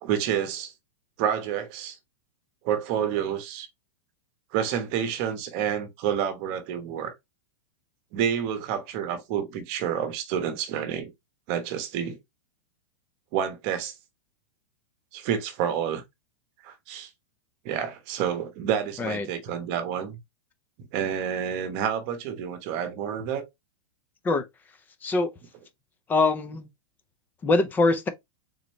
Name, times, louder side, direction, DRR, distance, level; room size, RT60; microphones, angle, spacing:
voice 1, 0.0-0.7 1.2-2.0 2.6-3.7 4.5-7.1 8.1-11.1 11.5-12.2 13.3-13.9 15.1-16.0 16.6-17.1 17.6-20.2 20.9-23.4, right 9 dB, 35° right, 1.0 m, -29 dB
voice 2, 25.0-25.3 26.1-26.7 27.4-28.1, left 3 dB, 10° left, 0.4 m, -23 dB
3.9 x 3.0 x 3.0 m
supercardioid pair, 160°, 17 cm